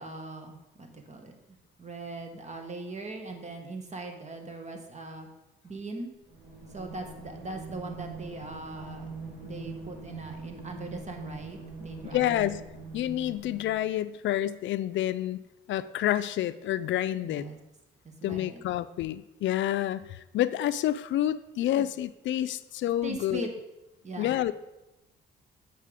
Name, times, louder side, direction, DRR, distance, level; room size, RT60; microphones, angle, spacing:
voice 1, 0.0-5.3 5.6-6.1 6.7-9.1 9.4-12.5 17.2-17.6 18.0-18.6 21.8-21.9 23.0-23.5 24.0-24.4, right 2 dB, 35° right, 4 dB, 1.5 m, -40 dB
sound 1, 6.3-14.0, right 3 dB, 70° right, 3.1 m, -43 dB
voice 2, 12.1-12.6 12.9-15.4 15.7-17.4 18.2-23.5 24.2-24.5, left 12 dB, 70° left, 14 dB, 0.4 m, -28 dB
8.2 x 5.5 x 5.0 m, 0.95 s
cardioid pair, 90°, 20 cm